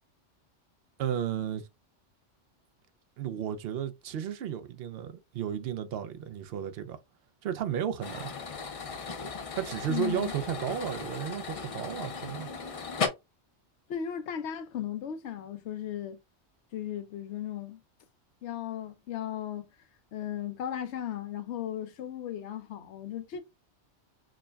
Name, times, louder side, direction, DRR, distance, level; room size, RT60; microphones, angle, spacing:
voice 1, 1.0-1.7 3.2-7.0 7.4-8.3 9.5-12.5, right 9 dB, 65° right, 0.7 m, -33 dB
sound 1, 8.0-13.1, left 5 dB, 50° left, 0.4 m, -36 dB
voice 2, 9.9-10.3 13.9-16.2 16.7-17.8 18.4-19.6 20.1-23.4, left 10 dB, 70° left, 0.9 m, -36 dB
6.0 x 2.2 x 2.2 m
omnidirectional pair, 1.3 m